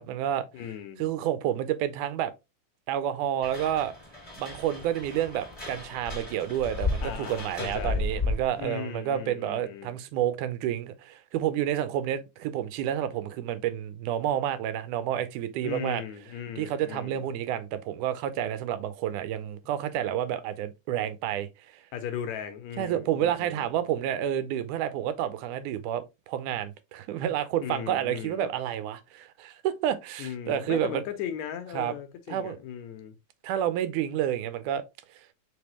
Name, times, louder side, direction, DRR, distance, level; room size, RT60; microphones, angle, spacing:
voice 1, 0.0-0.5 1.0-2.3 2.9-3.9 4.4-16.0 16.6-21.5 22.8-31.0 31.7-31.9 32.3-32.6 33.4-34.8, right 11 dB, 85° right, 2.1 m, -29 dB
voice 2, 0.5-1.1 7.0-8.1 8.6-10.0 15.6-17.2 21.9-23.7 27.6-28.5 30.2-33.1, left 8 dB, 75° left, 1.8 m, -37 dB
sound 1, 3.4-8.6, left 3 dB, 20° left, 1.0 m, -34 dB
4.8 x 3.4 x 2.9 m
omnidirectional pair, 3.5 m